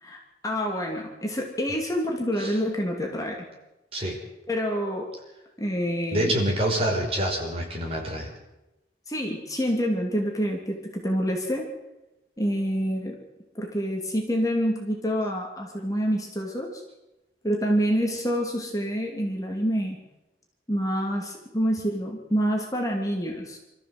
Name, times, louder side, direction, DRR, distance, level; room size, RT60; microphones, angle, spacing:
voice 1, 0.0-3.5 4.5-5.1 5.6-6.3 9.1-11.7 12.4-13.2 13.5-16.8 17.4-20.0 20.7-23.6, equal, 20° left, 1 dB, 2.9 m, -27 dB
voice 2, 6.1-8.3, right 1 dB, 30° right, 0 dB, 5.4 m, -26 dB
26.5 x 14.0 x 7.9 m, 0.99 s
head